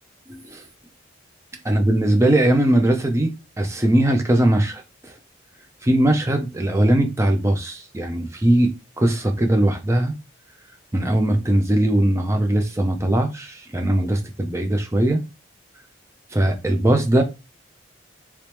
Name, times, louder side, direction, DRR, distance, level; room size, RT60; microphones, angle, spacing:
voice 1, 0.3-0.6 1.6-4.8 5.8-8.7 9.0-10.1 10.9-15.2 16.3-17.2, right 1 dB, 15° right, 0.5 m, -20 dB
3.0 x 3.0 x 3.3 m
head